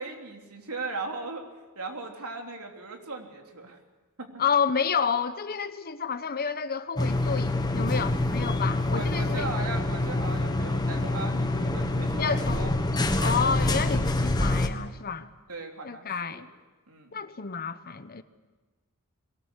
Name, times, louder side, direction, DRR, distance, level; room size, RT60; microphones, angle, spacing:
voice 1, 0.0-1.5 1.7-3.8 4.2-4.4 8.9-12.8 13.2-13.6 15.5-16.4 16.9-17.2, right 3 dB, 85° right, 2 dB, 3.2 m, -38 dB
voice 2, 4.4-9.4 12.2-12.6 13.2-15.3 15.8-16.5 17.1-18.2, left 6 dB, 45° left, 12 dB, 1.0 m, -30 dB
sound 1, 7.0-14.7, left 2 dB, 20° left, 1.4 m, -26 dB
22.5 x 18.5 x 8.2 m, 1.2 s
head